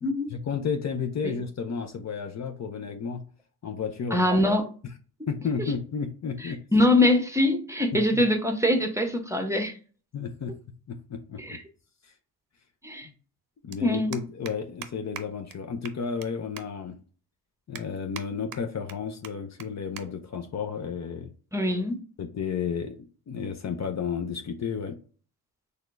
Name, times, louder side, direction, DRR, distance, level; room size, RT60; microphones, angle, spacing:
voice 1, 0.0-3.2 3.6-4.3 5.3-6.6 8.1-8.2 10.1-10.5 10.9-11.6 13.0-13.1 13.6-17.0 17.7-21.3 22.2-25.0, left 6 dB, 45° left, 5 dB, 0.6 m, -32 dB
voice 2, 4.1-4.6 6.4-9.7 11.4-11.6 12.8-13.1 13.8-14.2 21.5-22.0, left 1 dB, 10° right, 4 dB, 0.8 m, -23 dB
sound 1, 11.4-11.5 12.9-13.0 13.2-13.4 13.7-13.8 14.1-14.5 14.8-14.9 15.2-15.3 15.5-15.6 15.8-16.3 16.6-16.7 17.1-17.2 17.7-18.2 18.5-18.9 19.2-19.3 19.6-19.7 20.0-20.1 20.4-20.6 21.4-21.6, right 9 dB, 60° right, 0.6 m, -40 dB
4.2 x 3.3 x 2.5 m, 0.38 s
cardioid pair, 80°, 38 cm